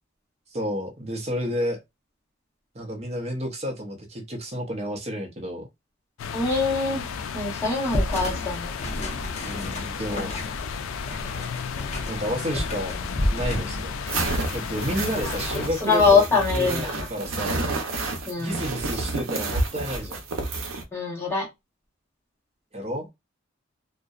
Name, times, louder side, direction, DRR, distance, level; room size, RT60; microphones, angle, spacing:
voice 1, 0.5-1.8 2.7-5.7 9.4-10.3 12.1-13.0 13.3-13.9 14.5-17.7 18.4-20.2 22.7-23.1, equal, 30° right, 0.6 m, -31 dB
sound 1, 6.2-15.7, left 6 dB, 75° left, 0.3 m, -34 dB
voice 2, 6.3-7.0 7.3-8.7 15.8-17.1 18.3-18.6 20.9-21.5, left 4 dB, 15° left, 1.1 m, -23 dB
sound 2, 7.9-16.1, left 1 dB, 35° left, 0.6 m, -32 dB
sound 3, 14.1-20.8, right 3 dB, 80° right, 0.6 m, -29 dB
2.6 x 2.0 x 2.3 m
head